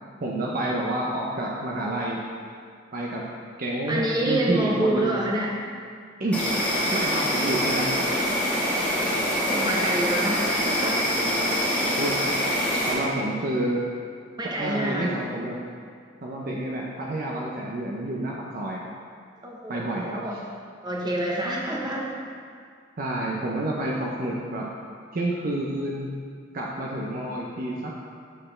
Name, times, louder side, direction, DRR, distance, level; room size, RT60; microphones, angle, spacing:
voice 1, 0.2-2.2 2.9-3.2 3.6-5.1 6.2-6.4 6.9-8.0 12.0-12.2 12.8-13.8 14.6-15.6 16.2-18.9 19.7-20.2 23.0-24.7 25.1-26.1 26.5-27.9, right 1 dB, 50° right, -2 dB, 0.6 m, -29 dB
voice 2, 3.9-5.6 8.7-11.0 14.4-15.1 19.4-20.4 20.8-22.1, right 1 dB, 20° right, -3 dB, 1.0 m, -27 dB
Insect, 6.3-12.9, equal, 5° left, 1.4 m, -25 dB
7.6 x 6.5 x 3.2 m, 2.2 s
head